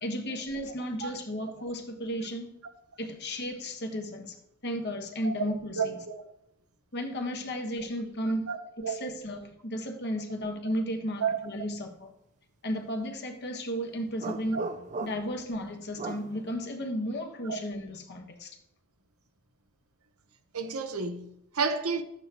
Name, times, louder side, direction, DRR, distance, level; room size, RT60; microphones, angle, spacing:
voice 1, 0.0-2.6 3.0-6.0 6.9-8.5 8.8-12.1 12.6-14.7 15.0-18.6, equal, 50° left, 1.3 m, -34 dB
voice 2, 5.8-6.3 8.5-9.1 11.2-11.4 14.5-14.6 17.5-17.6 20.5-22.0, right 5 dB, 80° right, 1.0 m, -31 dB
sound 1, 14.2-15.4 16.0-16.3, right 3 dB, 35° right, 0.5 m, -37 dB
12.5 x 8.9 x 3.0 m
head